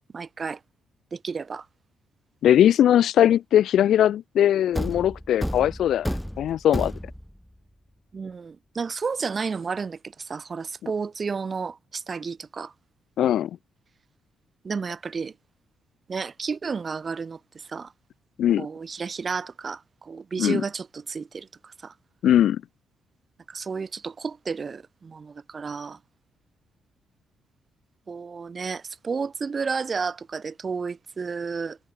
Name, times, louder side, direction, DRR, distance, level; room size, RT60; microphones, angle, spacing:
voice 1, 0.1-0.6 1.1-1.7 8.1-12.7 14.6-15.3 16.1-17.4 17.7-17.9 18.6-21.9 23.5-26.0 28.1-31.8, right 5 dB, 35° right, 5.5 m, -32 dB
voice 2, 2.4-6.1 6.4-6.9 10.8-10.9 13.2-13.5 18.4-18.7 20.4-20.6 22.2-22.6, left 11 dB, 70° left, 1.4 m, -20 dB
Thump thud, 4.7-7.4, equal, ahead, 5.7 m, -31 dB
cardioid pair, 90°, 0 cm